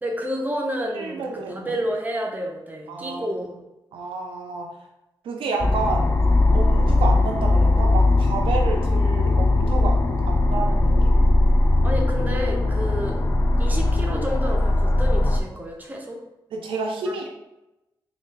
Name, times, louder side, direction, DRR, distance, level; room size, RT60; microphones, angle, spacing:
voice 1, 0.0-3.6 11.8-13.2 13.6-16.2 17.0-17.2, equal, 20° right, 0 dB, 0.7 m, -30 dB
voice 2, 0.9-1.7 2.9-3.4 3.9-4.8 5.2-6.1 6.5-10.0 10.3-11.2 12.9-13.0 16.5-17.3, right 3 dB, 85° right, 1 dB, 0.5 m, -30 dB
sound 1, 5.6-15.4, left 2 dB, 30° left, 0.4 m, -19 dB
3.3 x 2.4 x 3.2 m, 0.94 s
cardioid pair, 85°, 9 cm